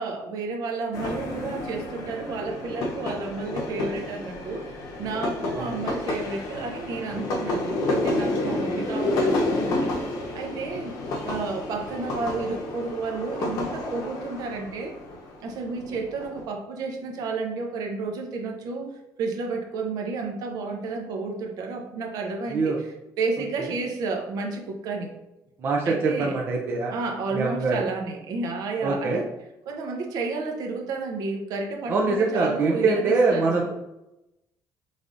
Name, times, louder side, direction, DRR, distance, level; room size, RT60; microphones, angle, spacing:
voice 1, 0.0-4.7 5.0-10.1 10.3-10.9 11.2-14.9 15.4-18.9 19.2-22.9 23.2-25.1 25.8-26.4 26.9-29.2 29.7-33.7, right 3 dB, 60° right, 2 dB, 0.8 m, -31 dB
sound 1, 0.9-16.4, left 2 dB, 60° left, 0.7 m, -30 dB
voice 2, 25.6-26.9 27.3-27.8 28.8-29.2 31.9-33.6, right 3 dB, 30° right, -1 dB, 0.4 m, -23 dB
5.1 x 3.3 x 2.5 m, 0.91 s
cardioid pair, 175°, 7 cm